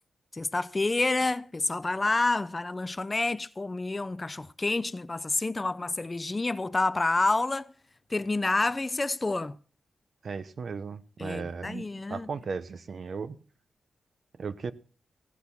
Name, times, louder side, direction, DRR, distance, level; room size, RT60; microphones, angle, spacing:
voice 1, 0.3-7.7 8.1-9.6 11.2-12.3, left 2 dB, 25° left, 0.5 m, -28 dB
voice 2, 10.2-11.8 12.1-13.4 14.4-14.7, right 5 dB, 55° right, 0.8 m, -36 dB
16.0 x 6.2 x 7.1 m
cardioid pair, 85°, 0 cm